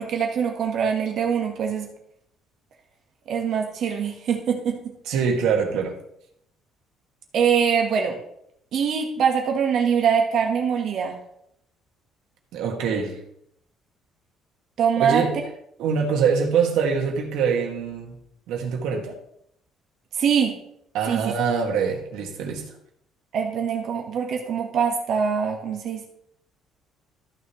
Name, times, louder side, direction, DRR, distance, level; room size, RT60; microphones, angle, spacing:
voice 1, 0.0-1.9 3.3-4.8 7.3-8.2 8.7-11.2 14.8-15.2 20.2-20.6 21.1-21.3 23.3-26.0, right 7 dB, 50° right, 2 dB, 1.4 m, -23 dB
voice 2, 5.1-6.0 12.5-13.2 15.0-15.4 15.8-18.2 18.5-19.1 20.9-22.7, right 6 dB, 85° right, 2 dB, 1.9 m, -24 dB
13.5 x 6.6 x 3.1 m, 0.74 s
cardioid pair, 170°, 0 cm